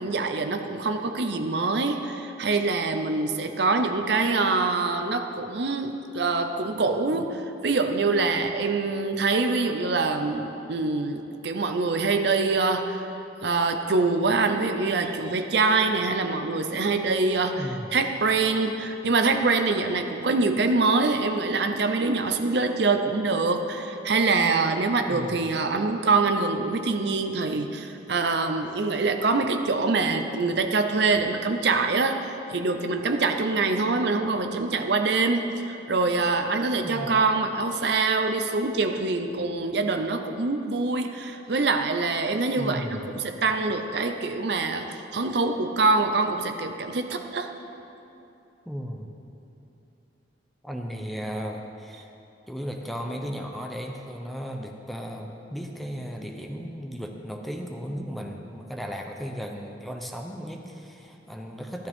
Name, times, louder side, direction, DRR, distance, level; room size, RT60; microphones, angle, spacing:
voice 1, 0.0-13.0 13.4-47.6, right 3 dB, 60° right, 7 dB, 0.6 m, -25 dB
voice 2, 17.6-17.9 25.1-25.4 36.8-37.1 42.6-43.0 48.7-49.1 50.6-52.1 52.5-61.9, equal, ahead, 2 dB, 0.7 m, -35 dB
14.5 x 12.0 x 3.6 m, 2.8 s
head